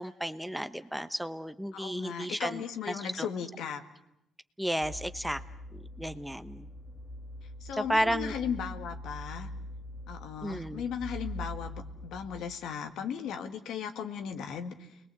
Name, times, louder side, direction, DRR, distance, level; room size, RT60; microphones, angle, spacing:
voice 1, 0.0-3.3 4.6-5.4 5.7-6.7 7.8-8.3 10.4-10.8, equal, 5° right, 11 dB, 1.0 m, -33 dB
voice 2, 1.7-3.8 7.6-9.5 10.1-14.9, left 7 dB, 80° left, 7 dB, 2.0 m, -37 dB
sound 1, 4.8-12.2, left 1 dB, 15° left, 2.0 m, -43 dB
29.5 x 21.0 x 8.0 m, 0.83 s
cardioid pair, 90°, 0 cm